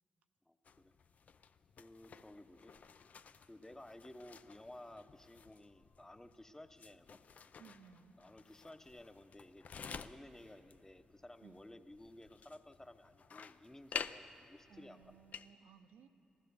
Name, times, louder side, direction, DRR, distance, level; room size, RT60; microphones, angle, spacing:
voice 1, 0.5-0.9 1.8-2.7 3.5-7.2 8.2-15.1, left 1 dB, 15° left, 9 dB, 1.0 m, -55 dB
sound 1, 0.6-15.5, left 6 dB, 60° left, 0.5 m, -51 dB
voice 2, 7.6-8.2 11.4-11.6 14.7-16.1, right 7 dB, 85° right, 10 dB, 0.7 m, -60 dB
15.5 x 12.5 x 7.0 m, 2.8 s
supercardioid pair, 50°, 3 cm